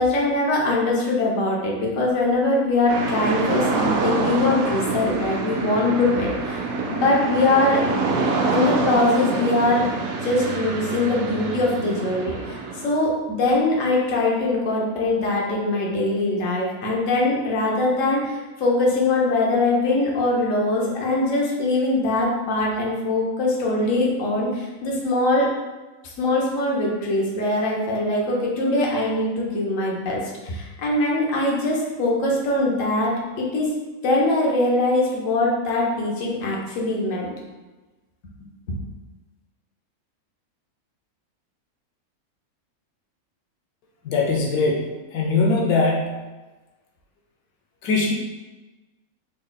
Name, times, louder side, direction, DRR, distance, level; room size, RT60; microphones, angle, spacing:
voice 1, 0.0-7.8 8.5-9.9 10.2-25.5 26.0-33.7 34.0-37.3 38.7-38.8, left 2 dB, 65° left, -3 dB, 1.2 m, -22 dB
sound 1, 2.9-12.9, right 3 dB, 70° right, 0.9 m, -26 dB
voice 2, 44.0-44.8 45.1-46.2 47.8-48.1, left 3 dB, 90° left, -2 dB, 1.1 m, -21 dB
3.8 x 3.7 x 2.3 m, 1.2 s
omnidirectional pair, 1.5 m